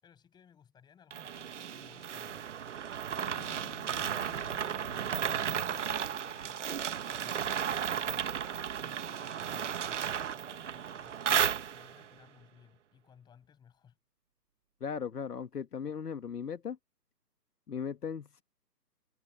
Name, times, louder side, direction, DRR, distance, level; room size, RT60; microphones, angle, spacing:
voice 1, 0.0-2.6 3.1-14.0, left 8 dB, 10° left, 7.8 m, -61 dB
sound 1, 1.1-12.1, right 8 dB, 45° right, 1.3 m, -34 dB
Bowed string instrument, 3.2-8.8 9.4-9.5, left 14 dB, 30° left, 5.6 m, -56 dB
voice 2, 14.8-16.8 17.7-18.4, left 7 dB, 65° left, 1.8 m, -37 dB
hypercardioid pair, 155°, 49 cm